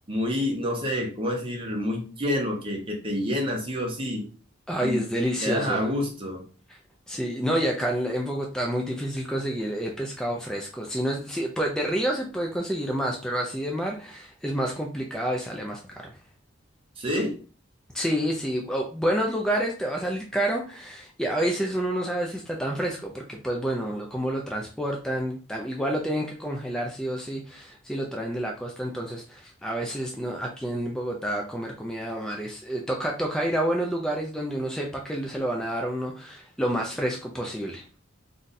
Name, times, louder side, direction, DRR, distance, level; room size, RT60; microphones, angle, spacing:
voice 1, 0.1-4.3 4.8-5.0 5.4-6.4 17.0-17.4, left 1 dB, 25° right, 1 dB, 0.7 m, -28 dB
voice 2, 4.7-5.8 7.1-16.1 17.9-37.8, right 1 dB, 5° left, 0 dB, 0.3 m, -29 dB
2.6 x 2.3 x 3.8 m, 0.37 s
head